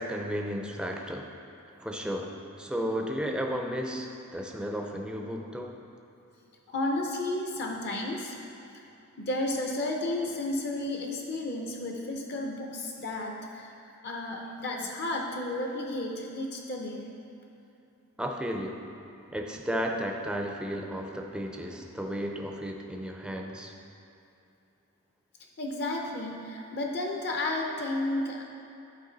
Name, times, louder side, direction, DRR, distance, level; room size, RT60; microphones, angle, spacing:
voice 1, 0.0-1.3 1.8-5.8 18.2-18.9 19.3-23.8, equal, 5° right, 2 dB, 0.4 m, -33 dB
voice 2, 6.7-8.3 9.2-13.7 14.0-17.1 25.6-28.4, left 2 dB, 50° left, 0 dB, 0.7 m, -32 dB
10.5 x 4.5 x 3.9 m, 2.8 s
head